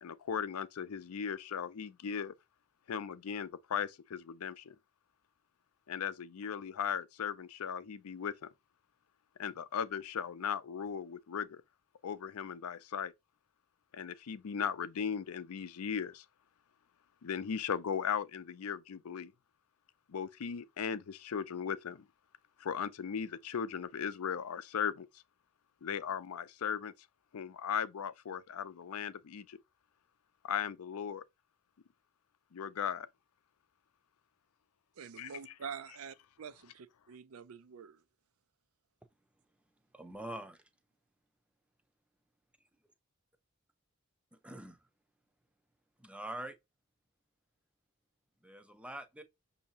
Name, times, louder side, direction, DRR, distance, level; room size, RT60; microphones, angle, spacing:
voice 1, 0.0-2.3 2.9-4.7 5.9-8.5 9.4-11.6 12.0-13.1 13.9-16.2 17.2-19.3 20.1-22.0 22.6-25.1 25.8-26.9 27.3-29.6 30.4-31.2 32.5-33.1 35.2-35.5, left 7 dB, 85° left, 0.5 m, -37 dB
voice 2, 35.0-38.0, right 6 dB, 75° right, 0.5 m, -46 dB
voice 3, 39.9-40.6 44.4-44.8 46.0-46.6 48.4-49.2, right 1 dB, 5° right, 0.5 m, -44 dB
6.3 x 2.8 x 2.8 m
head